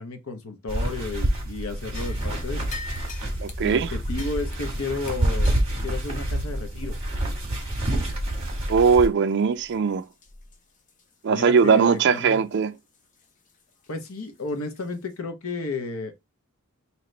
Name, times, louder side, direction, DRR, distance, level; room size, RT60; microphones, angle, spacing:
voice 1, 0.0-2.6 3.6-5.5 5.8-7.0 11.3-12.4 13.9-16.2, left 3 dB, 70° left, 0.8 m, -32 dB
sound 1, 0.7-9.1, right 1 dB, 25° right, 1.6 m, -28 dB
sound 2, 1.9-8.5 8.9-9.0 9.5-9.7 10.2-10.6 10.9-11.0 11.6-11.7 14.0-14.1 14.7-14.8, left 2 dB, 35° left, 0.7 m, -41 dB
voice 2, 3.4-3.9 8.7-10.0 11.2-12.7, right 5 dB, 50° right, 0.4 m, -20 dB
3.2 x 2.9 x 3.8 m
head